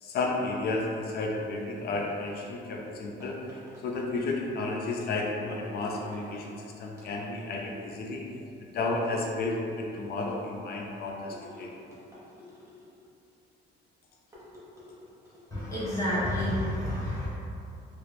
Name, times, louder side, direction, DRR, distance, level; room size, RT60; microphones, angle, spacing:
voice 1, 0.0-8.2 8.7-11.7, left 2 dB, 55° left, 0 dB, 0.4 m, -32 dB
sound 1, 3.2-4.6 5.8-6.5 6.9-7.6 9.0-9.9 11.3-13.1 14.3-15.6, left 1 dB, 15° right, 0.7 m, -50 dB
voice 2, 15.5-17.3, left 1 dB, 15° left, -11 dB, 0.9 m, -29 dB
3.0 x 2.4 x 3.1 m, 2.6 s
cardioid pair, 155°, 19 cm